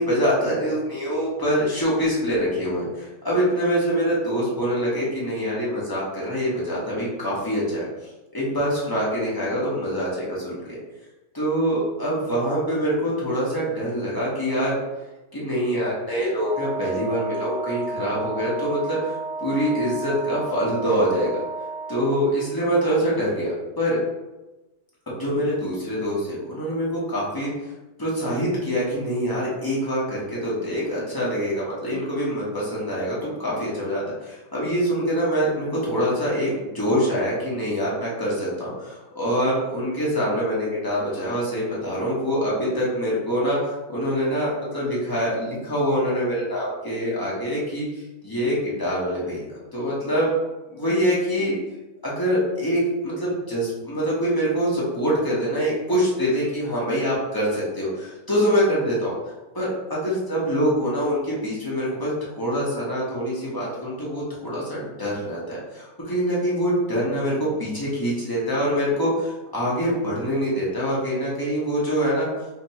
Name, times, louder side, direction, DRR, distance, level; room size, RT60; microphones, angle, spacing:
voice 1, 0.0-7.8 8.3-10.6 11.3-14.7 15.3-19.1 19.4-21.4 21.9-24.0 25.1-27.5 28.0-43.6 43.9-47.9 48.2-50.3 50.7-51.5 52.0-59.1 59.5-72.3, equal, 25° left, -7 dB, 0.4 m, -25 dB
Wind instrument woodwind instrument, 16.4-22.1, right 3 dB, 65° right, 0.8 m, -32 dB
2.9 x 2.8 x 4.2 m, 1.0 s
omnidirectional pair, 2.1 m